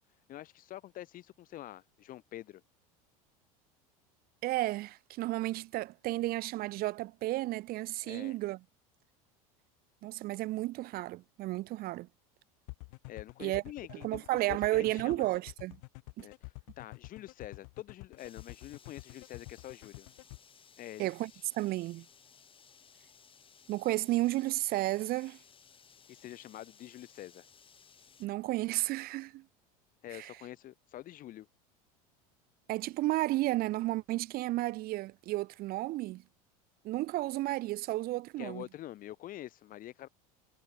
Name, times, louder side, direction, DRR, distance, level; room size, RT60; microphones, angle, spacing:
voice 1, 0.3-2.6 8.0-8.4 13.1-15.2 16.2-20.1 20.8-21.4 26.1-27.5 30.0-31.5 38.4-40.1, left 13 dB, 50° left, 5.6 m, -46 dB
voice 2, 4.4-8.6 10.0-12.1 13.4-13.6 13.9-15.8 16.2-16.3 21.0-22.1 23.7-25.4 28.2-29.4 30.1-30.3 32.7-36.2 36.8-38.6, right 18 dB, 55° right, 1.9 m, -32 dB
sound 1, 12.7-20.4, left 37 dB, 70° left, 5.9 m, -48 dB
sound 2, 18.2-28.3, left 7 dB, 30° left, 6.6 m, -60 dB
supercardioid pair, 100°, 19 cm